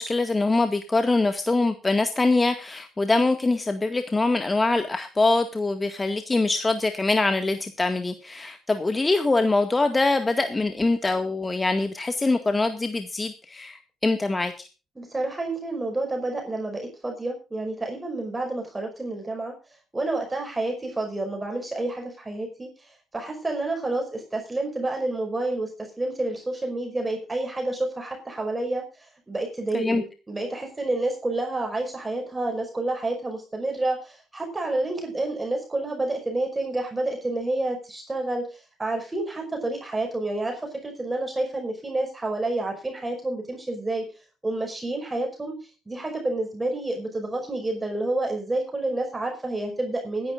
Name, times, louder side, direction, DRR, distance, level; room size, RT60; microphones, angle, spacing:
voice 1, 0.0-14.7 29.7-30.0, left 3 dB, 25° left, 7 dB, 1.9 m, -23 dB
voice 2, 15.0-19.5 19.9-44.1 44.4-50.3, right 2 dB, 20° right, 2 dB, 5.6 m, -29 dB
24.5 x 11.0 x 2.5 m, 0.33 s
hypercardioid pair, 50°, 0 cm